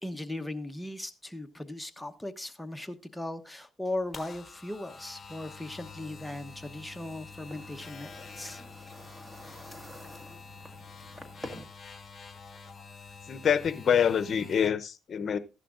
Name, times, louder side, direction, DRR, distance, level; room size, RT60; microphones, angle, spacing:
voice 1, 0.0-8.6, left 1 dB, 5° left, 1.0 m, -38 dB
sound 1, 3.9-14.7, left 5 dB, 35° left, 1.4 m, -47 dB
sound 2, 6.3-11.6, equal, 10° right, 1.9 m, -48 dB
voice 2, 13.3-15.4, left 8 dB, 50° left, 0.8 m, -26 dB
14.5 x 11.0 x 2.5 m
cardioid pair, 90°, 0 cm